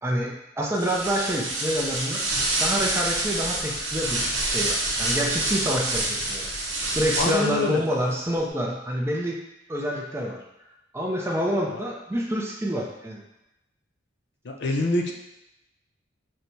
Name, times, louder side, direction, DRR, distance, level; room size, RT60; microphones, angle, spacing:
voice 1, 0.0-9.4 9.7-10.4 10.9-13.2, equal, 15° right, -1 dB, 0.4 m, -27 dB
sound 1, 0.7-7.6, right 2 dB, 80° right, 0.8 m, -27 dB
voice 2, 7.2-7.8 11.7-11.8 14.4-15.1, left 2 dB, 60° left, 1 dB, 0.5 m, -25 dB
6.0 x 2.2 x 2.6 m, 0.93 s
head